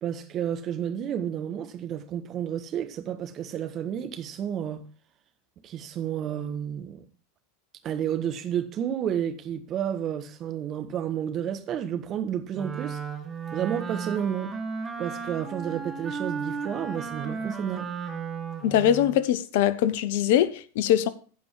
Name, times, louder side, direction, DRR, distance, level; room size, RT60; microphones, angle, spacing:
voice 1, 0.0-4.8 5.6-7.0 7.8-13.0 13.5-14.5 15.0-17.9, right 9 dB, 40° right, 1.5 m, -31 dB
Wind instrument woodwind instrument, 12.5-19.2, right 5 dB, 20° right, 1.8 m, -35 dB
voice 2, 18.6-21.1, left 11 dB, 60° left, 0.8 m, -22 dB
15.0 x 5.3 x 4.7 m
figure-of-eight pair, 85°, 0 cm